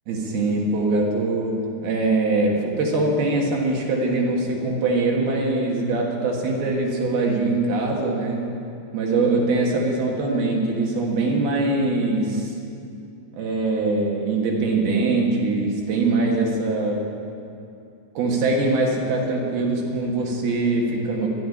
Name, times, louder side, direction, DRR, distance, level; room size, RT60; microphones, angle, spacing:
voice 1, 0.1-8.5 8.9-12.5 13.3-17.1 18.2-21.3, right 2 dB, 65° right, -1 dB, 3.4 m, -22 dB
12.0 x 10.5 x 9.8 m, 2.6 s
omnidirectional pair, 4.9 m